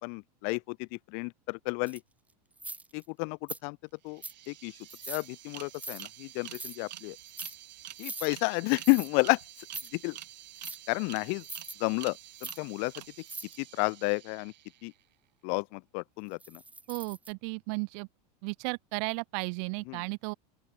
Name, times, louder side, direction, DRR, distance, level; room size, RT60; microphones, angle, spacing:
voice 1, 0.0-2.0 2.9-3.8 4.0-4.7 5.1-7.2 8.0-9.4 9.9-10.2 10.9-11.4 11.8-12.9 13.6-14.5 14.8-14.9 15.4-16.6 19.9-20.0, left 36 dB, 45° left, 1.2 m, -31 dB
sound 1, 1.9-2.0 2.6-3.0 3.5-3.6 4.2-4.5 4.9-5.3 5.7-6.0 6.5-6.8 7.2-7.6 8.0-8.3 8.8-9.1 9.6-9.9 10.6-10.8 11.4-11.7 12.4-12.6 13.3-13.6 16.4-17.3, right 3 dB, 5° right, 2.5 m, -41 dB
sound 2, 3.8-3.9 4.1-14.9, right 13 dB, 85° right, 2.5 m, -48 dB
voice 2, 16.9-18.1 18.4-20.3, right 38 dB, 45° right, 0.9 m, -34 dB
open air
supercardioid pair, 150°, 21 cm